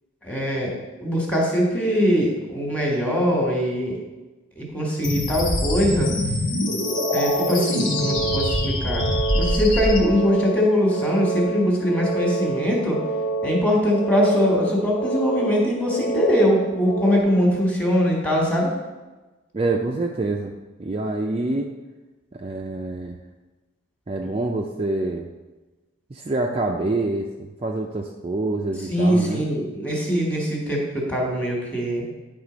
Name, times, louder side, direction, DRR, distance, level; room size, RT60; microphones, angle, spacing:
voice 1, 0.2-4.0 4.6-6.1 7.1-9.1 9.3-13.0 13.4-18.7 28.8-32.0, equal, 5° left, -3 dB, 1.5 m, -22 dB
sound 1, 5.0-10.0, left 1 dB, 80° left, 2.0 m, -24 dB
sound 2, 6.7-17.2, right 3 dB, 65° left, 0.6 m, -28 dB
voice 2, 19.5-20.5 20.8-21.7 22.3-23.1 24.1-25.3 26.1-29.4, right 2 dB, 30° right, 1 dB, 0.4 m, -26 dB
9.7 x 3.7 x 5.0 m, 1.2 s
head